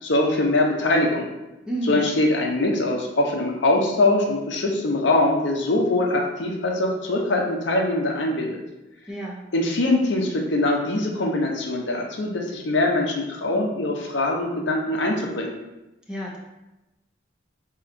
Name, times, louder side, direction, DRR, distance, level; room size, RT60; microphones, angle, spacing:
voice 1, 0.0-1.3 1.9-8.6 9.5-15.6, left 2 dB, 70° left, 0 dB, 0.7 m, -22 dB
voice 2, 1.7-2.1 9.1-9.4 16.1-16.4, right 1 dB, 5° right, -4 dB, 0.6 m, -30 dB
5.4 x 2.8 x 2.5 m, 0.99 s
head